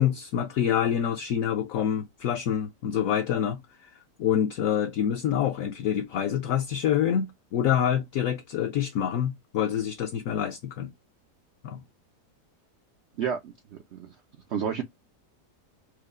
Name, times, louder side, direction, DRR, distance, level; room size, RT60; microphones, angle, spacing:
voice 1, 0.0-3.9 4.2-10.9 11.6-11.8, left 9 dB, 70° left, 0.8 m, -26 dB
voice 2, 13.2-14.1 14.5-14.8, right 7 dB, 80° right, 0.6 m, -31 dB
4.6 x 2.4 x 2.3 m
omnidirectional pair, 1.8 m